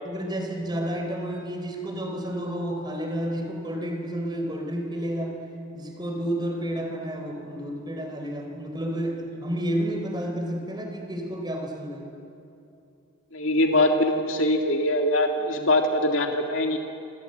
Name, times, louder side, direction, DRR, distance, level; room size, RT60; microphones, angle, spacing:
voice 1, 0.0-5.5 5.7-12.1, right 1 dB, 20° right, 3 dB, 3.8 m, -31 dB
voice 2, 13.3-16.8, left 1 dB, 70° left, 3 dB, 2.1 m, -22 dB
27.5 x 27.0 x 7.9 m, 2.7 s
head